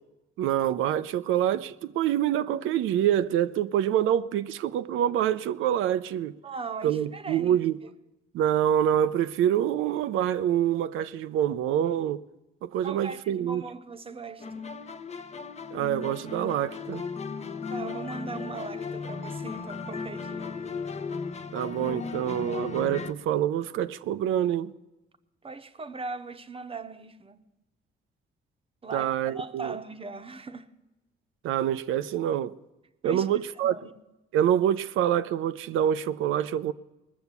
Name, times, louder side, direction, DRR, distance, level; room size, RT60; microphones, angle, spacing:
voice 1, 0.4-6.4 6.8-7.8 8.3-12.2 12.6-13.6 15.7-17.0 21.5-24.7 28.9-29.8 31.4-32.5 33.0-33.7 34.3-36.7, right 10 dB, 85° right, 0.5 m, -26 dB
voice 2, 6.4-7.6 7.8-7.9 12.8-14.6 17.7-20.5 25.4-27.4 28.8-30.7 33.0-33.3 33.6-33.9, right 4 dB, 30° right, 0.8 m, -39 dB
sound 1, 14.4-23.1, left 5 dB, 35° left, 0.7 m, -36 dB
19.0 x 7.0 x 8.2 m
cardioid pair, 90°, 20 cm